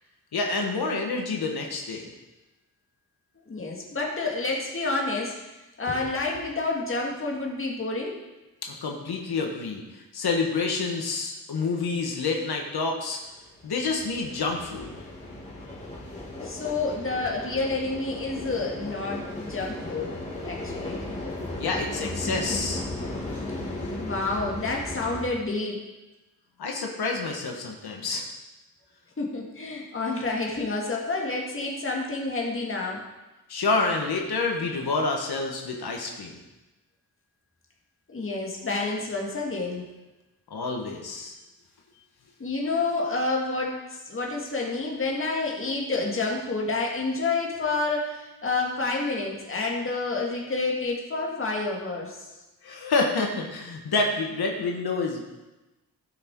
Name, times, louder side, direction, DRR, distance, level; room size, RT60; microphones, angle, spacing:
voice 1, 0.3-2.1 8.6-13.2 13.6-15.0 21.6-22.8 26.6-28.2 33.5-36.3 40.5-41.3 52.6-55.2, left 3 dB, 90° left, 1 dB, 1.5 m, -28 dB
voice 2, 3.4-5.4 5.8-8.2 16.4-20.1 20.4-21.0 24.0-25.8 29.2-33.0 38.1-39.8 42.4-52.3, left 3 dB, 35° left, -1 dB, 2.0 m, -29 dB
sound 1, 13.3-25.2, left 1 dB, 20° left, 2.7 m, -36 dB
16.0 x 6.2 x 4.7 m, 1.1 s
wide cardioid pair, 165°, 37 cm